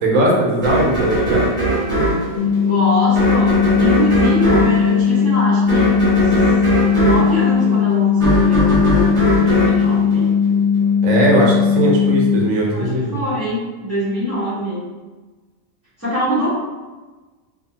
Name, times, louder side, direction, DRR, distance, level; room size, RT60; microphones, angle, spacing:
voice 1, 0.0-1.5 11.0-13.2, right 1 dB, 85° right, -3 dB, 1.1 m, -18 dB
sound 1, 0.6-10.8, right 1 dB, 25° right, 0.9 m, -20 dB
sound 2, 2.4-12.4, left 7 dB, 85° left, 1.0 m, -17 dB
voice 2, 2.6-6.3 7.0-10.3 12.7-14.8 16.0-16.5, equal, 15° left, -12 dB, 0.8 m, -23 dB
2.7 x 2.4 x 2.7 m, 1.3 s
omnidirectional pair, 1.4 m